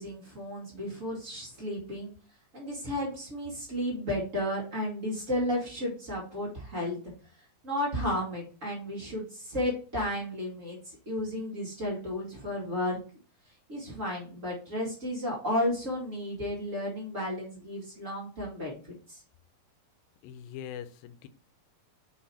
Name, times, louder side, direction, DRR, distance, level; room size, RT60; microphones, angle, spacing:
voice 1, 0.0-2.1 2.5-7.0 7.6-13.0 13.7-19.2, left 1 dB, 45° right, -3 dB, 0.9 m, -33 dB
voice 2, 20.2-21.3, left 9 dB, 80° left, 11 dB, 2.2 m, -42 dB
5.5 x 4.4 x 4.1 m, 0.40 s
omnidirectional pair, 4.3 m